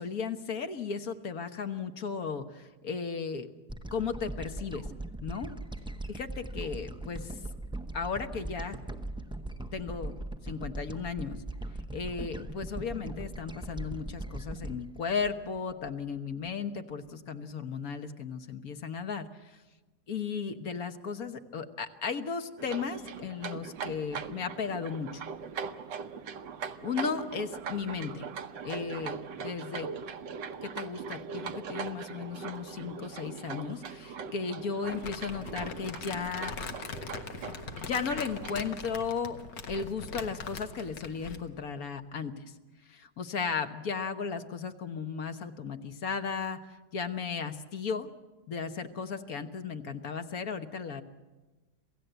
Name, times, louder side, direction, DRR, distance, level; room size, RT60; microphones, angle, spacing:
voice 1, 0.0-3.5 3.9-4.8 5.2-5.5 6.1-7.4 7.9-8.8 9.7-10.1 10.4-11.4 11.9-19.3 20.1-25.2 26.8-28.3 28.6-29.9 30.6-36.6 37.8-39.4 39.7-42.3 42.9-48.1 48.5-51.0, left 5 dB, 60° left, 8 dB, 1.5 m, -35 dB
sound 1, 3.7-16.2, right 2 dB, 5° right, 0.4 m, -40 dB
sound 2, 22.6-38.8, right 6 dB, 85° right, 1.6 m, -41 dB
Crumpling crinkling, 34.9-41.5, left 5 dB, 85° left, 2.1 m, -41 dB
28.0 x 16.5 x 8.0 m, 1.2 s
omnidirectional pair, 1.9 m